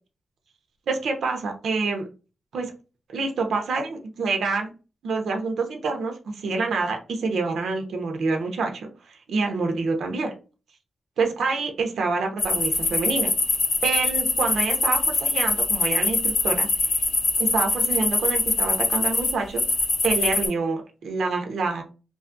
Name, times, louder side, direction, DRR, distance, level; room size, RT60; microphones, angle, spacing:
voice 1, 0.9-2.0 2.5-2.7 3.1-4.7 5.0-10.3 11.2-13.3 13.8-17.0 17.4-19.6 20.0-21.8, right 3 dB, 70° right, 3 dB, 0.6 m, -27 dB
sound 1, 12.4-20.5, left 3 dB, 60° left, 1.0 m, -23 dB
2.6 x 2.3 x 2.5 m, 0.33 s
wide cardioid pair, 180°, 0 cm